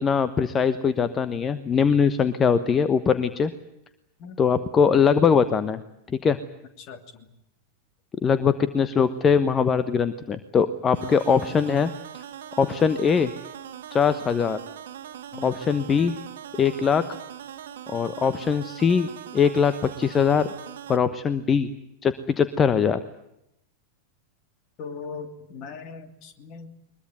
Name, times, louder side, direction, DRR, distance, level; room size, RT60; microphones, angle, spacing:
voice 1, 0.0-3.5 4.4-5.8 6.1-6.4 8.2-11.9 12.6-13.3 13.9-14.6 15.4-16.1 16.6-17.0 17.9-20.5 20.9-21.7 22.0-23.0, left 6 dB, 20° left, 13 dB, 1.1 m, -21 dB
voice 2, 6.8-7.3 11.0-11.2 15.3-15.6 24.8-26.7, left 5 dB, 40° left, 8 dB, 2.9 m, -39 dB
sound 1, 10.9-21.0, right 10 dB, 60° right, 1.5 m, -41 dB
22.5 x 22.0 x 9.3 m, 0.83 s
figure-of-eight pair, 90°, 0 cm